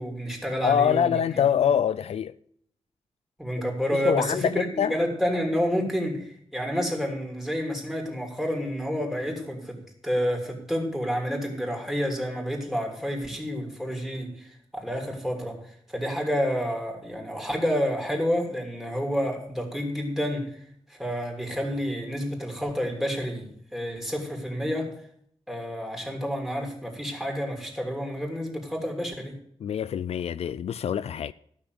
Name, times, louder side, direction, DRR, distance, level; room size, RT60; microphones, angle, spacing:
voice 1, 0.0-1.7 3.4-20.5 20.9-24.9 25.5-29.4, equal, 5° right, 3.0 m, -29 dB
voice 2, 0.6-2.3 3.9-4.9 29.6-31.3, left 8 dB, 80° left, 0.4 m, -25 dB
13.0 x 6.1 x 8.0 m
wide cardioid pair, 105°, 11 cm